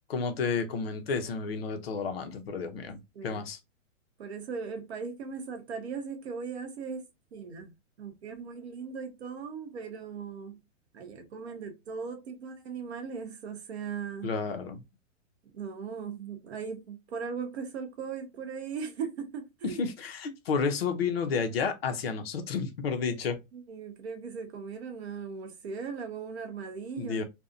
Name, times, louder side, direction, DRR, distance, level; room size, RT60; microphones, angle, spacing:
voice 1, 0.1-3.6 14.2-14.8 19.6-23.4 27.0-27.2, left 5 dB, 50° left, 0.5 m, -31 dB
voice 2, 4.2-7.7 8.0-10.6 10.9-14.3 15.5-19.8 23.5-27.2, right 5 dB, 55° right, 0.7 m, -38 dB
2.5 x 2.0 x 2.4 m
hypercardioid pair, 165°, 39 cm